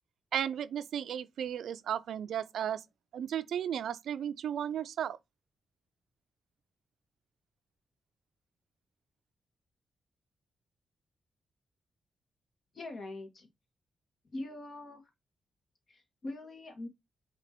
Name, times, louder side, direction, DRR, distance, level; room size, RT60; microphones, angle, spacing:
voice 1, 0.3-2.8 3.1-5.2, right 9 dB, 75° right, 0.4 m, -34 dB
voice 2, 12.7-13.5 14.3-15.1 15.9-16.9, left 2 dB, 60° left, 1.6 m, -42 dB
5.8 x 2.9 x 2.9 m
hypercardioid pair, 40°, 0 cm